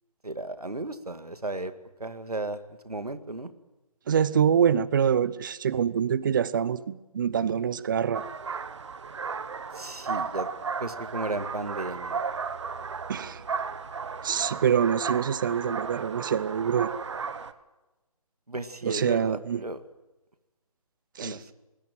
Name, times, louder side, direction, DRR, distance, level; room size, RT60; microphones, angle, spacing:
voice 1, 0.2-1.7 2.0-3.5 9.7-10.5 10.8-12.2 18.5-19.8 21.2-21.4, right 2 dB, 90° right, 10 dB, 2.0 m, -34 dB
voice 2, 4.1-8.2 13.1-13.4 14.2-16.9 18.8-19.6 21.2-21.4, right 8 dB, 35° right, 19 dB, 0.7 m, -25 dB
sound 1, 8.1-17.5, right 5 dB, 50° right, 1.3 m, -34 dB
23.0 x 20.5 x 7.7 m, 1.1 s
figure-of-eight pair, 150°, 19 cm